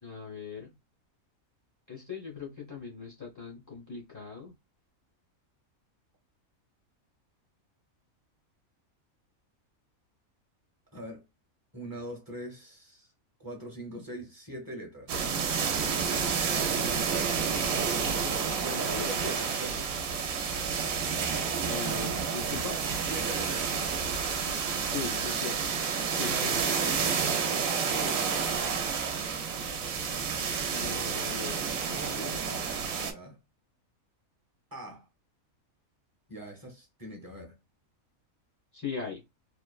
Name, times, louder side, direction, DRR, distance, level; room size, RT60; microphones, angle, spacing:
voice 1, 0.0-0.7 1.9-4.5 18.7-19.3 21.6-22.8 24.8-25.7 26.1-26.5 30.7-32.7 38.7-39.2, left 5 dB, 30° left, 0.3 m, -40 dB
voice 2, 10.9-11.2 11.7-13.1 13.4-15.3 16.5-17.3 18.6-19.9 23.1-23.8 25.9-28.3 31.9-32.5 32.9-33.4 34.7-35.1 36.3-37.6, right 1 dB, 20° right, 0.7 m, -42 dB
sound 1, 15.1-33.1, right 6 dB, 75° right, 1.0 m, -30 dB
3.0 x 2.2 x 2.2 m
omnidirectional pair, 1.5 m